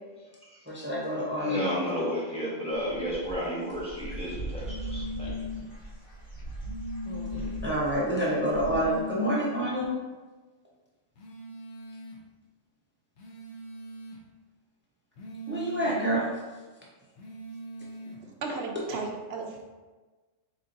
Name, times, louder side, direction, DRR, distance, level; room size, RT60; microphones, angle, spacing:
voice 1, 0.7-1.6 7.1-10.0 15.5-16.3, right 1 dB, 15° right, -4 dB, 0.4 m, -28 dB
voice 2, 1.4-5.4, equal, 5° left, -7 dB, 1.1 m, -32 dB
Dog / Bird, 2.7-9.0, right 2 dB, 50° left, 1.4 m, -40 dB
sound 1, 4.6-5.7 6.6-7.7 8.6-9.7 11.2-12.2 13.2-14.2 15.2-16.2 17.2-18.2, left 2 dB, 65° left, 1.0 m, -39 dB
voice 3, 18.1-19.6, right 3 dB, 60° right, 1 dB, 0.8 m, -36 dB
4.3 x 3.8 x 2.6 m, 1.3 s
omnidirectional pair, 1.3 m